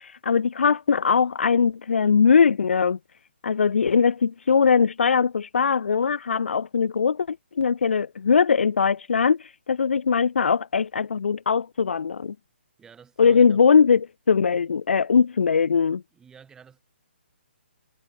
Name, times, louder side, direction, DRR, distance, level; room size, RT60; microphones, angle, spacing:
voice 1, 0.0-3.0 3.4-12.3 13.2-16.0, left 6 dB, 80° left, 0.4 m, -21 dB
voice 2, 12.8-13.6 16.1-16.8, right 7 dB, 10° right, 1.9 m, -50 dB
hypercardioid pair, 145°, 6 cm